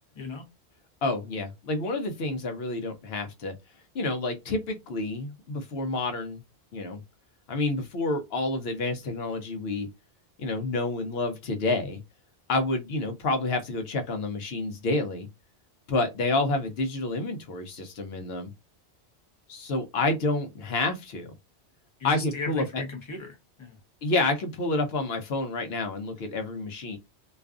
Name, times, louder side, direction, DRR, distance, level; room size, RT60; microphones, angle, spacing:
voice 1, 1.0-3.5 3.9-6.4 6.7-7.0 7.5-9.9 10.4-12.0 12.5-15.3 15.9-18.5 19.5-21.3 22.0-22.8 24.0-27.0, left 2 dB, 65° left, 0.9 m, -29 dB
voice 2, 22.0-23.8, left 4 dB, 30° left, 0.7 m, -37 dB
2.5 x 2.3 x 2.4 m
omnidirectional pair, 1.1 m